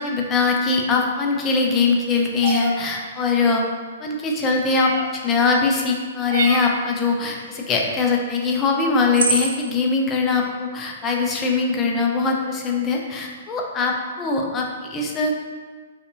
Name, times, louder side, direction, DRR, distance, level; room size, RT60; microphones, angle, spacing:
voice 1, 0.0-3.6 4.0-4.9 5.2-15.3, left 4 dB, 25° left, 0 dB, 0.4 m, -22 dB
sound 1, 2.4-2.8 4.8-5.3 6.3-6.8 8.4-8.5 9.1-9.6, right 3 dB, 60° right, 0.4 m, -24 dB
2.6 x 2.4 x 2.6 m, 1.5 s
figure-of-eight pair, 120°, 0 cm